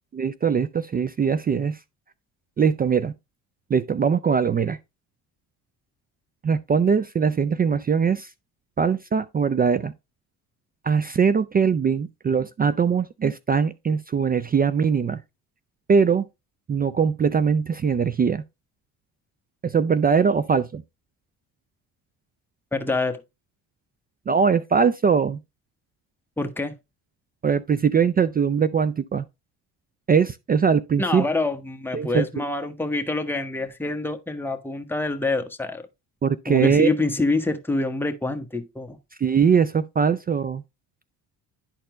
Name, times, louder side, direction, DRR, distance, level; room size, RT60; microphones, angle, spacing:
voice 1, 0.1-1.8 2.6-3.1 3.7-4.8 6.4-8.3 8.8-9.9 10.8-15.2 15.9-16.3 16.7-18.4 19.6-20.8 24.3-25.4 27.4-29.2 30.1-31.2 31.9-32.4 36.2-36.9 39.2-40.6, right 6 dB, 25° right, 0.3 m, -21 dB
voice 2, 22.7-23.2 26.4-26.8 31.0-35.9 36.5-39.0, left 2 dB, 5° left, 1.1 m, -26 dB
10.5 x 4.3 x 3.2 m
supercardioid pair, 80°, 40 cm